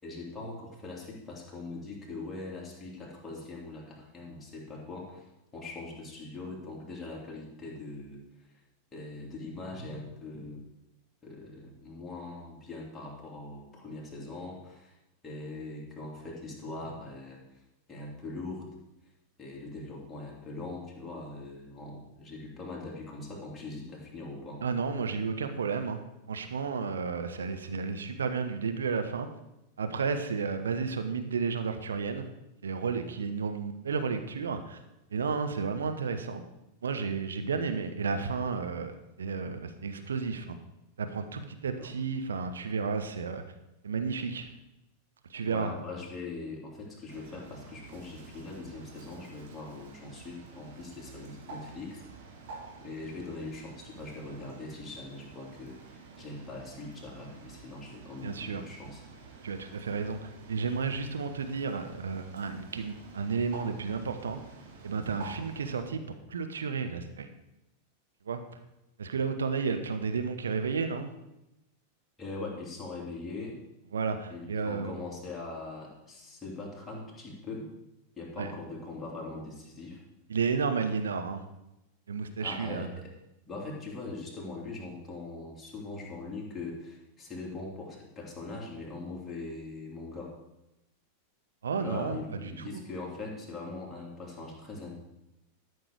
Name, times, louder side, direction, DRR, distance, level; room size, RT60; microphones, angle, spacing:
voice 1, 0.0-5.3 5.5-8.2 8.9-10.6 11.2-14.9 15.2-17.4 17.9-18.7 19.4-24.6 41.8-41.9 45.5-52.0 52.8-59.0 72.2-73.6 74.3-77.7 78.2-80.0 82.4-83.1 83.5-90.3 91.8-94.9, left 3 dB, 15° left, -3 dB, 3.0 m, -41 dB
voice 2, 24.6-26.0 26.3-29.3 29.8-32.3 32.6-34.8 35.1-36.4 36.8-40.6 41.0-43.4 43.8-44.5 45.3-45.7 58.2-58.6 59.4-60.2 60.5-64.4 64.8-67.3 68.3-68.4 69.0-71.1 73.9-74.9 78.4-78.5 80.3-81.4 82.1-82.9 91.6-92.2 92.6-92.8, right 5 dB, 70° right, 7 dB, 0.8 m, -32 dB
Bird, 47.1-65.8, right 4 dB, 55° right, 1.9 m, -49 dB
12.5 x 6.5 x 4.6 m, 0.91 s
figure-of-eight pair, 90°, 0 cm